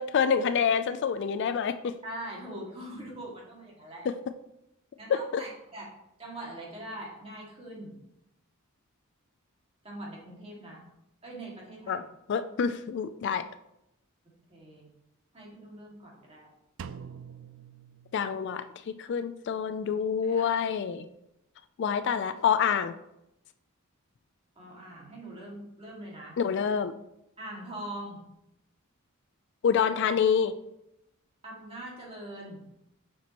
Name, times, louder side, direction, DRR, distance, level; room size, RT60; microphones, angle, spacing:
voice 1, 0.0-2.0 4.1-4.2 5.1-5.4 11.9-12.0 12.3-13.5 18.1-21.0 21.8-22.9 26.4-26.9 29.6-30.5, left 7 dB, 55° left, 11 dB, 0.3 m, -27 dB
voice 2, 2.0-4.1 5.0-5.9 6.2-7.9 9.8-10.8 11.2-12.0 14.5-14.9 15.3-16.5 20.2-20.6 24.6-26.4 27.4-28.2 31.4-32.6, right 1 dB, 30° right, -3 dB, 2.0 m, -42 dB
Drum, 16.8-18.7, right 7 dB, 65° right, 0.4 m, -45 dB
7.2 x 6.0 x 2.9 m, 0.84 s
head